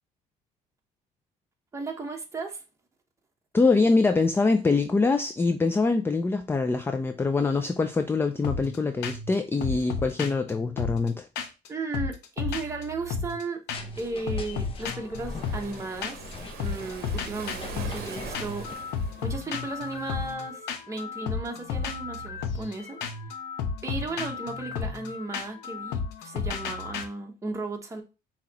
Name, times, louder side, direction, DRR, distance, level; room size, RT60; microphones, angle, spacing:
voice 1, 1.7-2.6 11.7-13.6 14.0-18.9 19.2-23.0 23.8-28.0, right 3 dB, 15° right, 1.0 m, -35 dB
voice 2, 3.5-11.3, left 3 dB, 15° left, 0.3 m, -24 dB
sound 1, 8.4-8.8 9.0-9.3 9.6-11.7 11.9-13.4 13.7-14.0 14.3-16.3 16.6-27.0, left 5 dB, 85° left, 0.8 m, -33 dB
sound 2, 13.7-18.7, left 4 dB, 35° left, 0.7 m, -42 dB
Waves surf, 15.2-20.3, right 8 dB, 65° right, 0.8 m, -43 dB
5.6 x 2.9 x 2.9 m
cardioid pair, 110°, 17 cm